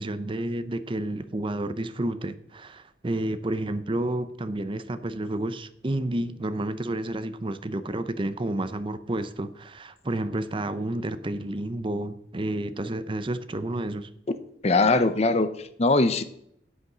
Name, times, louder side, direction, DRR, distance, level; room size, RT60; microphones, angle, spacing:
voice 1, 0.0-14.1, right 1 dB, 30° right, 11 dB, 0.6 m, -30 dB
voice 2, 14.6-16.2, left 3 dB, 35° left, 11 dB, 0.7 m, -21 dB
8.4 x 8.0 x 6.1 m, 0.73 s
head